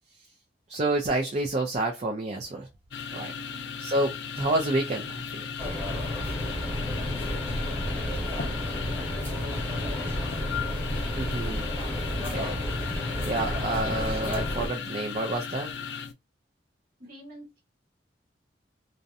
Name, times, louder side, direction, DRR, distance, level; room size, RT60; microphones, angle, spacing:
voice 1, 0.7-2.7 3.1-3.3 3.8-5.5 11.2-11.7 12.3-12.6 13.2-15.7, right 2 dB, 40° right, 0.4 m, -29 dB
sound 1, 2.9-16.1, left 7 dB, 70° left, 0.4 m, -37 dB
voice 2, 3.3-3.7 6.7-10.8 12.1-12.5 17.0-17.6, right 1 dB, 55° right, 1.1 m, -49 dB
sound 2, 5.6-14.7, left 1 dB, 10° left, 1.0 m, -31 dB
2.6 x 2.1 x 2.4 m
head